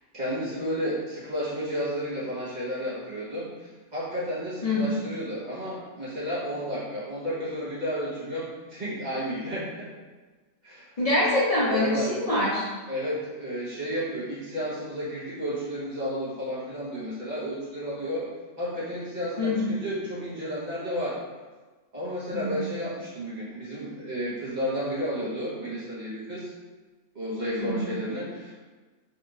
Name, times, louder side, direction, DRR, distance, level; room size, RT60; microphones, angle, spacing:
voice 1, 0.1-9.9 10.6-10.9 11.7-12.1 12.9-18.3 18.6-21.2 21.9-26.5 27.1-28.5, equal, 40° right, -9 dB, 1.4 m, -32 dB
voice 2, 11.0-12.7 19.4-19.8 22.3-22.7 27.6-28.0, left 1 dB, 40° left, -8 dB, 0.7 m, -25 dB
4.1 x 3.4 x 2.6 m, 1.3 s
omnidirectional pair, 1.2 m